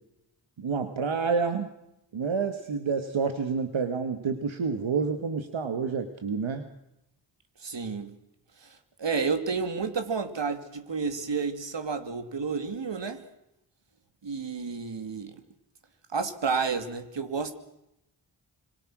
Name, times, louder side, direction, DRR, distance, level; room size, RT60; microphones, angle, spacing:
voice 1, 0.6-1.7 2.1-6.7, right 5 dB, 85° right, 8 dB, 1.8 m, -28 dB
voice 2, 7.6-8.1 8.6-13.2 14.2-15.4 16.1-17.6, right 5 dB, 70° right, 9 dB, 2.7 m, -31 dB
26.5 x 25.5 x 6.3 m, 0.86 s
cardioid pair, 55°, 46 cm